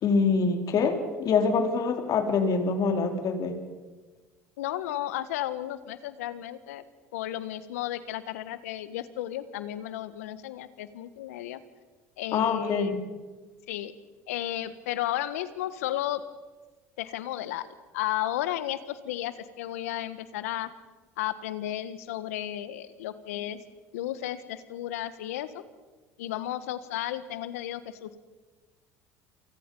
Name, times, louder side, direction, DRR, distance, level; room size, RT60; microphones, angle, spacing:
voice 1, 0.0-3.6 12.3-13.0, left 4 dB, 50° left, 5 dB, 3.8 m, -25 dB
voice 2, 4.6-6.8 7.1-11.6 12.2-13.0 13.7-13.9 14.3-16.2 17.0-17.7 17.9-20.7 21.2-23.6 23.9-25.6 26.2-28.2, left 13 dB, 85° left, 14 dB, 1.4 m, -33 dB
29.5 x 24.5 x 5.5 m, 1.3 s
hypercardioid pair, 80°, 8 cm